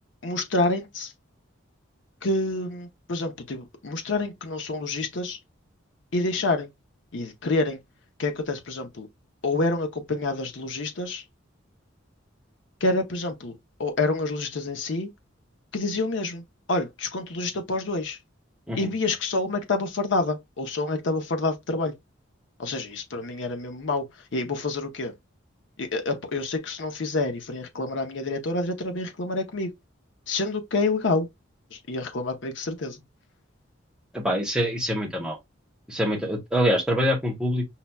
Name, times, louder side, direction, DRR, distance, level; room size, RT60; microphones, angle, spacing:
voice 1, 0.2-1.1 2.2-5.4 6.1-6.7 7.1-7.8 8.2-9.1 9.4-11.2 12.8-13.5 13.8-15.1 15.7-18.2 18.7-21.9 22.6-25.1 25.8-29.7 30.3-31.3 31.7-33.0, left 2 dB, 65° left, 0.7 m, -28 dB
voice 2, 34.1-35.4 35.9-37.7, equal, 5° right, 0.8 m, -25 dB
5.6 x 2.2 x 2.2 m
head